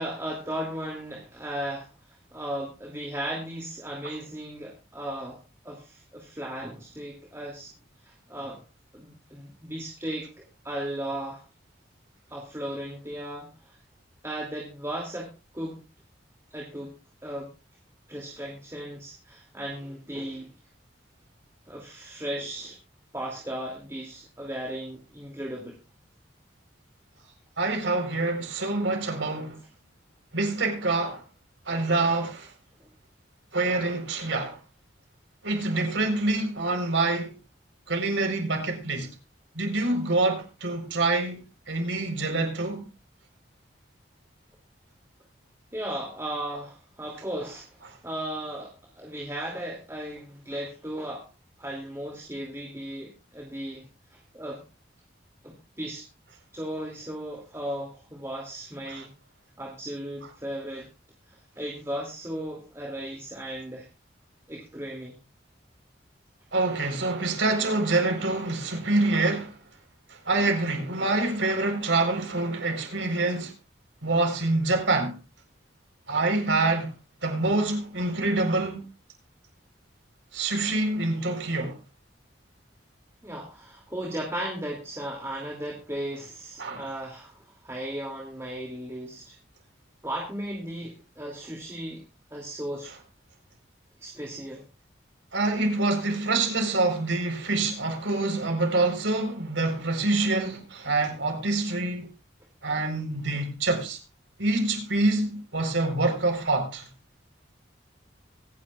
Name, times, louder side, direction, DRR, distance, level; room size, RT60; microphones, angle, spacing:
voice 1, 0.0-1.9 2.3-5.4 5.6-7.7 8.0-8.6 8.9-11.4 12.3-13.8 14.2-15.8 16.5-16.9 17.2-17.5 18.1-20.5 21.7-22.8 23.1-25.8 32.8-32.9 45.7-51.3 51.6-54.6 55.4-56.1 56.5-59.1 59.6-60.9 61.3-63.9 64.5-65.2 83.2-89.3 90.0-92.0 92.3-92.9 94.0-94.6, right 1 dB, 15° right, 2.7 m, -36 dB
voice 2, 27.6-29.6 30.3-31.2 31.7-32.5 33.5-34.6 35.4-37.4 37.9-39.1 39.5-42.8 58.9-59.0 66.5-69.5 70.3-73.5 74.0-75.1 76.1-76.9 77.2-78.8 80.3-81.8 86.6-86.9 95.3-102.1 102.6-104.0 104.4-106.9, right 2 dB, 85° right, 4.4 m, -26 dB
24.5 x 10.0 x 2.5 m
head